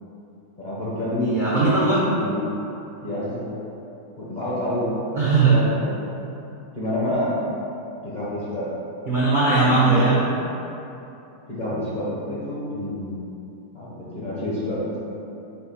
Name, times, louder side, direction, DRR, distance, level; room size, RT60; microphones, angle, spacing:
voice 1, 0.6-1.3 2.2-2.5 3.0-3.5 4.2-5.0 5.4-6.1 6.7-7.4 8.0-8.7 9.5-10.4 11.5-13.1 13.7-15.0, left 1 dB, 40° left, -9 dB, 0.7 m, -28 dB
voice 2, 1.2-2.0 5.1-5.6 9.1-10.2, right 3 dB, 60° right, -7 dB, 0.5 m, -18 dB
5.7 x 2.1 x 4.1 m, 2.9 s
omnidirectional pair, 1.7 m